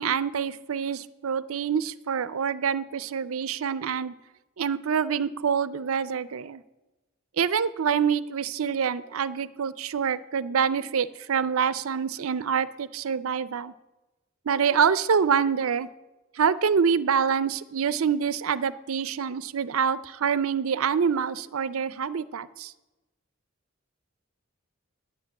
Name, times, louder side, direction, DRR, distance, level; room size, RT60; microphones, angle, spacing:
voice 1, 0.0-4.1 4.6-6.6 7.4-13.7 14.5-15.9 16.4-22.7, right 7 dB, 85° right, 17 dB, 0.5 m, -26 dB
9.7 x 8.2 x 8.7 m, 1.1 s
head